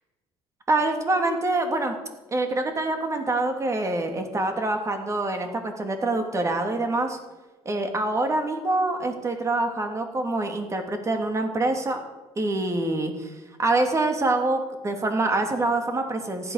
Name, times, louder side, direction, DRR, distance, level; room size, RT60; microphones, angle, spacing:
voice 1, 0.7-1.9 2.3-7.2 7.6-12.0 12.4-13.3 13.6-16.5, right 2 dB, 25° right, 5 dB, 2.8 m, -25 dB
14.5 x 11.5 x 6.7 m, 1.1 s
cardioid pair, 100°, 11 cm